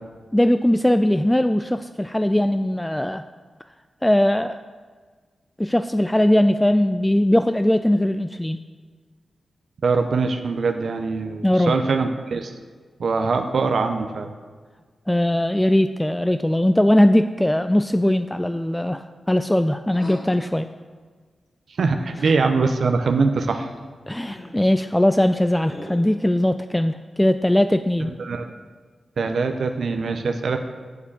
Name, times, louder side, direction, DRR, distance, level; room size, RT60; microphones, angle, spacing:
voice 1, 0.3-3.2 4.0-4.6 5.6-8.6 11.4-11.7 15.1-20.7 24.1-28.1, left 1 dB, 10° left, 9 dB, 0.3 m, -20 dB
voice 2, 9.8-12.5 13.0-14.3 21.8-23.7 28.2-28.5 29.2-30.6, right 4 dB, 70° right, 6 dB, 0.6 m, -22 dB
sound 1, 19.9-20.4 21.9-22.4 23.4-23.8 24.1-24.6 25.6-26.2, left 1 dB, 45° left, 2.4 m, -40 dB
7.0 x 6.6 x 7.2 m, 1.5 s
cardioid pair, 45°, 0 cm